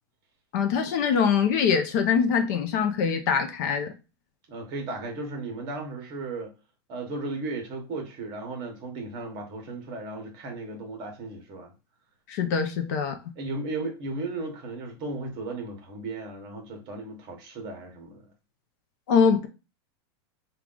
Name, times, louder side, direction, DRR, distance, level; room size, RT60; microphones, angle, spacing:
voice 1, 0.5-3.9 12.3-13.2 19.1-19.5, left 6 dB, 45° left, 0.5 m, -23 dB
voice 2, 4.5-6.5 6.9-11.7 13.4-18.2, right 2 dB, 30° right, 1.0 m, -35 dB
4.7 x 2.3 x 3.7 m
supercardioid pair, 175°, 14 cm